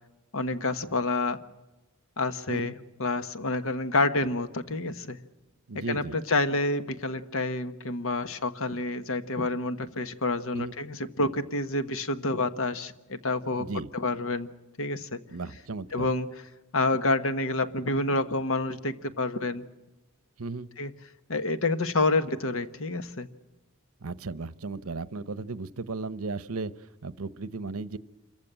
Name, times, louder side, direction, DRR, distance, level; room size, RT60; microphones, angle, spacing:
voice 1, 0.3-1.4 2.2-5.2 5.7-13.7 13.9-14.5 14.8-15.2 15.9-16.3 16.7-19.7 20.8-20.9 21.3-23.3, left 2 dB, 65° left, 11 dB, 1.3 m, -28 dB
voice 2, 5.7-6.2 10.5-10.7 13.6-13.9 15.3-16.1 20.4-20.7 24.0-28.0, right 3 dB, 75° right, 16 dB, 0.8 m, -35 dB
26.5 x 15.0 x 8.9 m, 1.1 s
head